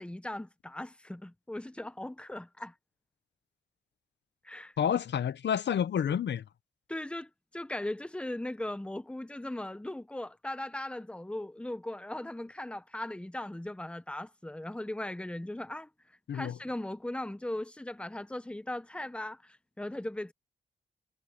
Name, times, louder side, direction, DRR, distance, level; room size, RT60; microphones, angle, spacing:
voice 1, 0.0-2.7 4.4-4.7 6.9-15.9 16.3-20.3, left 1 dB, 5° left, 1.0 m, -38 dB
voice 2, 4.8-6.4 16.3-16.6, left 8 dB, 80° left, 0.8 m, -29 dB
wide cardioid pair, 130°, 18 cm